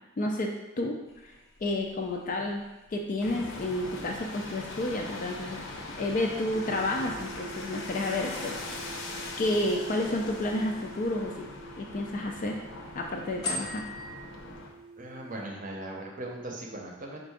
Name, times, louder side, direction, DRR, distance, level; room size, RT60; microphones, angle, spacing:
voice 1, 0.2-0.5 0.8-1.0 1.2-1.3 1.6-2.6 2.9-5.6 5.9-9.0 9.4-11.5 11.8-12.6 12.9-13.8, left 1 dB, 40° left, 1 dB, 0.3 m, -30 dB
sound 1, 1.0-14.1, left 2 dB, 20° left, 0.7 m, -46 dB
sound 2, 3.2-14.7, left 2 dB, 65° left, 0.7 m, -41 dB
sound 3, 6.5-15.5, right 4 dB, 75° right, 0.6 m, -48 dB
voice 2, 15.0-17.2, right 1 dB, 40° right, 0 dB, 0.7 m, -39 dB
4.4 x 2.5 x 4.7 m, 1.0 s
head